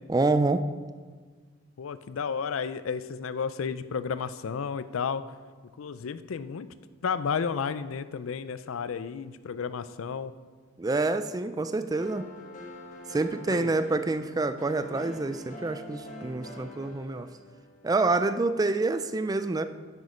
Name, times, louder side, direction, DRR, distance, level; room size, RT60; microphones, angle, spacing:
voice 1, 0.1-0.6 10.8-12.3 13.1-17.3 17.8-19.6, right 3 dB, 20° right, 11 dB, 0.3 m, -27 dB
voice 2, 1.8-5.2 5.8-6.7 7.0-10.3 13.5-13.7, left 6 dB, 80° left, 14 dB, 0.4 m, -32 dB
sound 1, 12.0-17.9, left 1 dB, 40° left, 1.6 m, -44 dB
9.4 x 8.1 x 5.0 m, 1.5 s
head